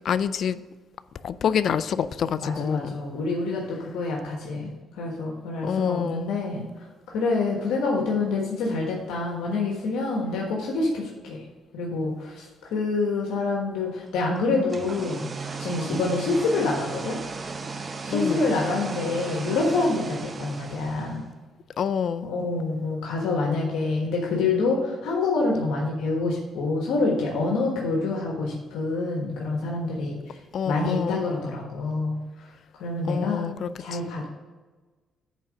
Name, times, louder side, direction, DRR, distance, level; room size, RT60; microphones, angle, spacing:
voice 1, 0.0-0.6 1.2-2.9 5.6-6.3 18.1-18.4 21.8-22.3 30.5-31.2 33.0-34.0, left 7 dB, 60° left, 15 dB, 0.4 m, -27 dB
voice 2, 2.4-4.7 5.0-6.6 7.1-11.4 11.7-12.5 12.7-15.3 15.6-17.2 18.0-21.2 22.2-30.4 30.6-32.2 32.8-33.5 33.8-34.2, left 3 dB, 90° left, -1 dB, 1.3 m, -26 dB
sound 1, 14.5-21.3, right 4 dB, 35° right, 0.8 m, -36 dB
9.1 x 3.8 x 6.4 m, 1.3 s
cardioid pair, 90°, 0 cm